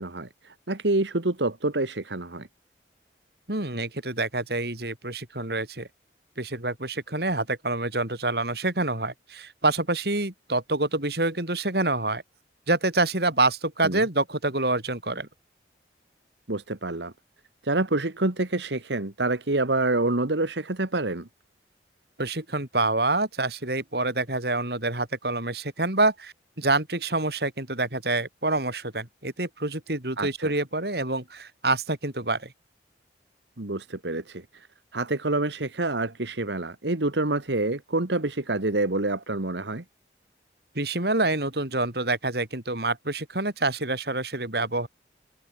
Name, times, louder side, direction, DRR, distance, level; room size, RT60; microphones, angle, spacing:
voice 1, 0.0-2.5 13.8-14.0 16.5-17.1 17.6-21.3 30.2-30.5 33.6-34.7 34.9-39.8, right 2 dB, 75° right, 1.8 m, -27 dB
voice 2, 3.5-5.9 6.4-12.2 12.7-15.3 22.2-32.5 40.8-44.9, right 2 dB, 60° right, 4.0 m, -27 dB
head